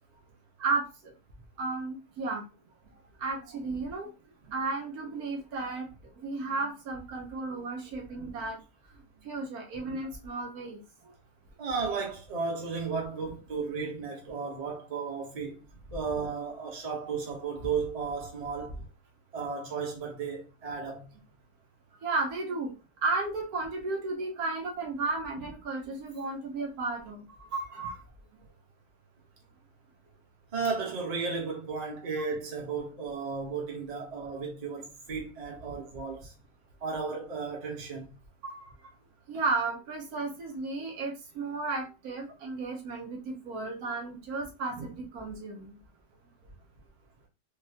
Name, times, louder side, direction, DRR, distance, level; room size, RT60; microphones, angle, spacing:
voice 1, 0.6-1.1 1.6-2.4 3.2-4.1 4.5-5.9 6.2-8.6 9.2-10.8 22.0-22.7 23.0-28.0 38.4-38.7 39.3-45.8, right 3 dB, 75° right, 1.3 m, -33 dB
voice 2, 11.6-15.6 15.9-18.8 19.3-21.1 30.5-36.3 36.8-38.0, right 5 dB, 30° right, 0.8 m, -34 dB
3.9 x 2.1 x 2.7 m
omnidirectional pair, 1.6 m